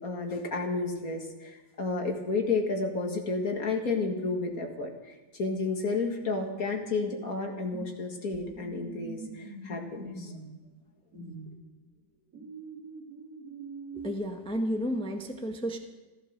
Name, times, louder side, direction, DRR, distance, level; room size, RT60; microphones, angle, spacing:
voice 1, 0.0-10.3, left 3 dB, 50° left, 3 dB, 2.3 m, -31 dB
sound 1, 6.5-7.9 8.3-10.6 11.1-11.5 12.3-14.1, right 3 dB, 50° right, 3.9 m, -44 dB
voice 2, 13.9-15.8, equal, 5° left, 3 dB, 1.0 m, -32 dB
14.5 x 13.5 x 6.5 m, 1.2 s
omnidirectional pair, 2.0 m